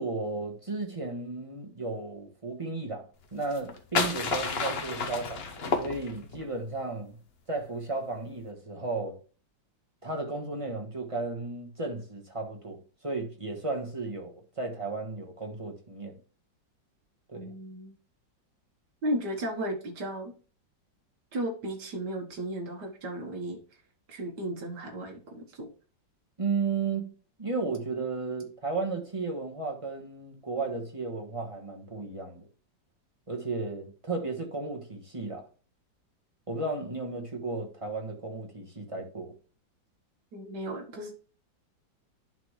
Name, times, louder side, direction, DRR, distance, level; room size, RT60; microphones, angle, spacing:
voice 1, 0.0-7.2 7.5-9.2 10.0-16.2 17.3-17.5 26.4-27.1 27.4-32.5 33.3-35.5 36.5-39.3, right 3 dB, 20° right, 1.1 m, -34 dB
sound 1, 3.4-6.5, left 4 dB, 45° left, 0.9 m, -30 dB
voice 2, 17.3-17.9 19.0-20.3 21.3-23.6 24.1-25.7 40.3-41.2, right 1 dB, 65° right, 1.9 m, -35 dB
10.5 x 4.1 x 3.1 m
omnidirectional pair, 2.0 m